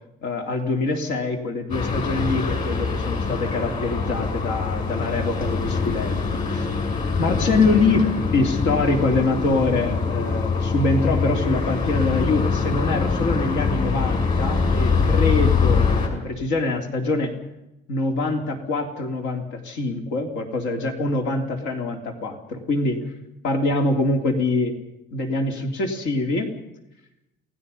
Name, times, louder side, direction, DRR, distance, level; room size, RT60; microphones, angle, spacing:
voice 1, 0.2-6.7 7.2-17.3 17.9-23.0 23.4-24.7 25.1-26.5, left 2 dB, 85° left, 4 dB, 3.3 m, -24 dB
sound 1, 1.7-16.1, left 5 dB, 40° left, 6.9 m, -23 dB
29.0 x 18.5 x 5.6 m, 0.87 s
cardioid pair, 135°, 19 cm